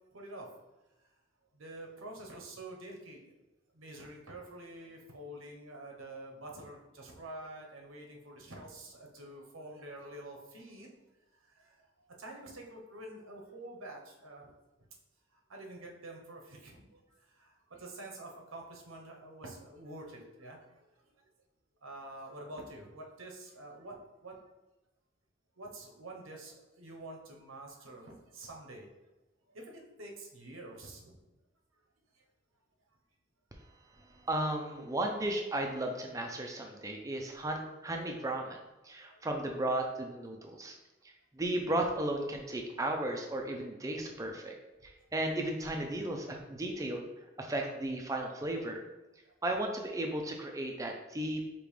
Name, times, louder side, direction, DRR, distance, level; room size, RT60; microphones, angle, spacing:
voice 1, 0.1-0.5 1.5-3.2 3.7-10.9 11.5-11.9 12.2-14.5 15.3-17.0 17.3-20.8 21.8-24.0 24.2-24.4 25.6-28.9 29.5-31.2 32.1-32.2 39.1-39.2 45.0-45.1 49.2-49.3, right 1 dB, 90° right, 0 dB, 0.9 m, -47 dB
voice 2, 34.3-38.6 38.8-40.8 41.3-44.5 44.8-47.0 47.4-48.8 49.4-51.4, right 1 dB, 15° right, 2 dB, 0.4 m, -34 dB
5.1 x 2.9 x 3.3 m, 1.0 s
head